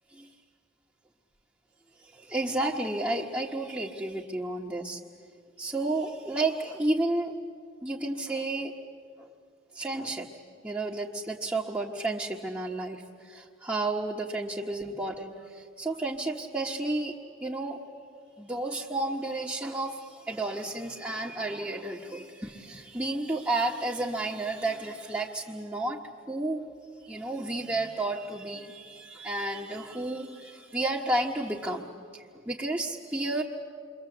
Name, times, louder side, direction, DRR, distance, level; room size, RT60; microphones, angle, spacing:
voice 1, 2.0-5.0 5.6-7.4 7.8-8.7 9.2-9.3 9.7-10.3 10.6-17.2 17.4-17.8 18.4-26.7 27.0-33.4, right 2 dB, 10° right, -4 dB, 1.2 m, -32 dB
28.5 x 23.5 x 7.9 m, 2.2 s
head